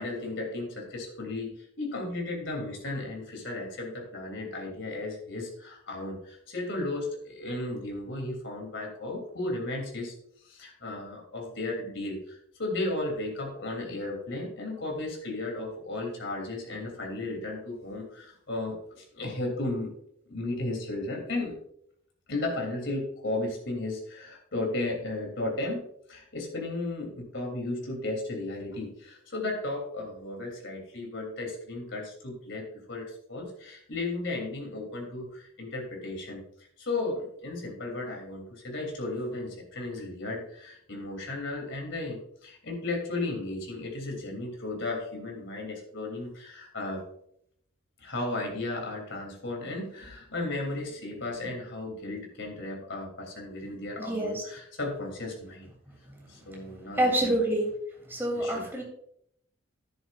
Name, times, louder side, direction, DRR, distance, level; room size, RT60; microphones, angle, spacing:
voice 1, 0.0-10.1 10.4-19.9 20.3-21.6 22.3-36.4 36.8-47.0 48.0-55.7 56.3-57.4 58.3-58.7, left 2 dB, 60° left, 1 dB, 3.2 m, -35 dB
voice 2, 54.0-54.4 56.9-57.6 58.1-58.8, right 1 dB, 10° right, -1 dB, 3.1 m, -27 dB
11.0 x 10.0 x 2.5 m, 0.69 s
head